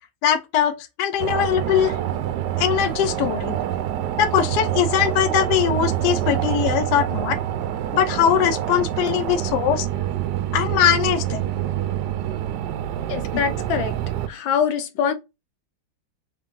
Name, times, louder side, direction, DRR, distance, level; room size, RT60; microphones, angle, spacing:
voice 1, 0.2-2.0 2.6-3.5 4.2-7.4 7.9-9.9 10.5-11.5, left 9 dB, 70° left, 1.2 m, -21 dB
sound 1, 1.2-14.3, right 11 dB, 75° right, 1.0 m, -26 dB
voice 2, 13.1-14.0 14.3-15.1, left 7 dB, 85° left, 1.5 m, -24 dB
3.7 x 2.8 x 3.7 m
omnidirectional pair, 2.0 m